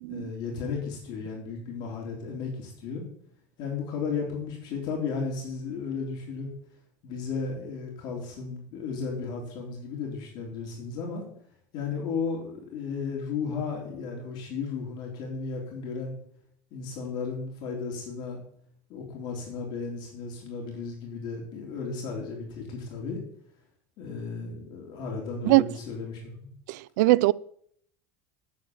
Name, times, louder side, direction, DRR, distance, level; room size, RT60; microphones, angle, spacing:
voice 1, 0.1-3.0 3.6-6.5 7.0-11.2 11.7-16.2 16.7-18.4 18.9-23.2 24.0-26.5, left 5 dB, 50° left, 3.6 m, -34 dB
voice 2, 26.7-27.3, right 18 dB, 85° right, 0.4 m, -21 dB
9.0 x 7.3 x 7.9 m
supercardioid pair, 140°, 9 cm